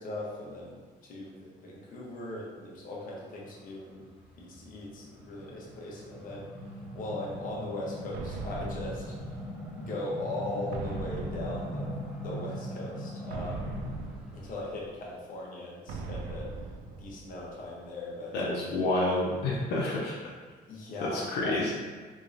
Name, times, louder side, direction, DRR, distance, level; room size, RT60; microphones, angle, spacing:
voice 1, 0.0-4.1 4.4-6.5 6.9-9.1 9.7-13.7 14.3-16.5 17.0-18.4 20.7-21.6, left 1 dB, 55° left, -4 dB, 1.0 m, -39 dB
sound 1, 3.9-14.3, equal, 5° right, 0.6 m, -40 dB
sound 2, 8.1-9.9 10.7-12.4 13.3-15.1 15.9-17.7, right 3 dB, 70° right, 0.5 m, -40 dB
voice 2, 18.3-20.1 21.1-21.7, left 2 dB, 80° left, -5 dB, 0.7 m, -28 dB
3.5 x 3.1 x 2.7 m, 1.4 s
cardioid pair, 110°, 17 cm